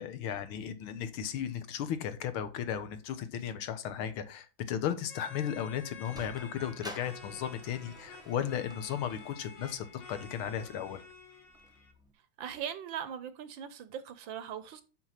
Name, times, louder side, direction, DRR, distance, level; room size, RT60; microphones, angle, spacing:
voice 1, 0.0-11.0, left 9 dB, 75° left, 1.8 m, -35 dB
sound 1, 5.1-11.9, left 4 dB, 55° left, 2.4 m, -50 dB
Sliding door, 5.8-12.1, right 1 dB, 5° right, 0.9 m, -52 dB
voice 2, 12.4-14.8, right 9 dB, 65° right, 1.4 m, -40 dB
6.6 x 6.2 x 5.7 m
omnidirectional pair, 2.4 m